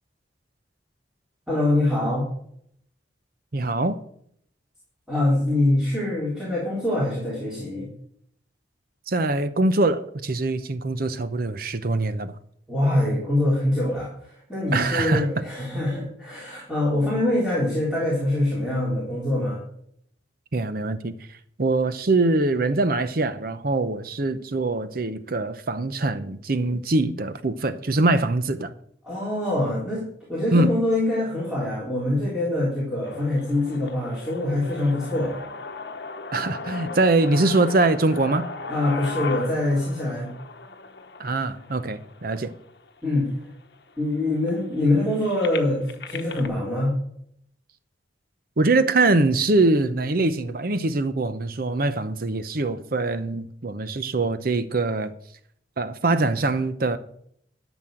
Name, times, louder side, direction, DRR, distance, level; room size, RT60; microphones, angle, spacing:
voice 1, 1.5-2.3 5.1-7.9 12.7-19.6 29.0-30.0 30.3-35.4 38.7-40.3 43.0-43.3 44.0-46.9, left 1 dB, 5° right, 3.9 m, -24 dB
voice 2, 3.5-4.0 9.1-12.3 14.7-15.3 20.5-28.7 30.5-30.8 36.3-38.5 41.2-42.5 48.6-55.1 55.8-57.0, right 2 dB, 50° right, 0.7 m, -23 dB
sound 1, 33.0-43.0 43.7-43.8 44.0-46.5, left 4 dB, 60° left, 1.0 m, -37 dB
12.5 x 6.2 x 7.6 m
head